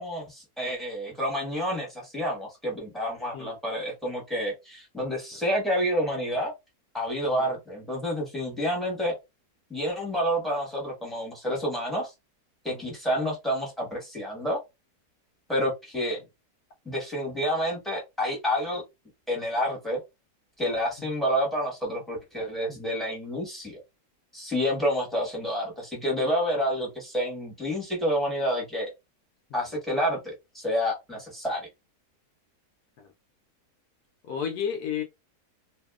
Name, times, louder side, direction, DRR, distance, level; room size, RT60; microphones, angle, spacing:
voice 1, 0.0-6.5 6.9-9.2 9.7-12.1 12.6-14.6 15.5-16.2 16.8-18.8 19.3-20.0 20.6-23.8 24.3-28.9 29.5-31.7, equal, ahead, 1.0 m, -29 dB
voice 2, 34.3-35.0, left 8 dB, 75° left, 1.0 m, -32 dB
2.7 x 2.7 x 2.3 m
omnidirectional pair, 1.7 m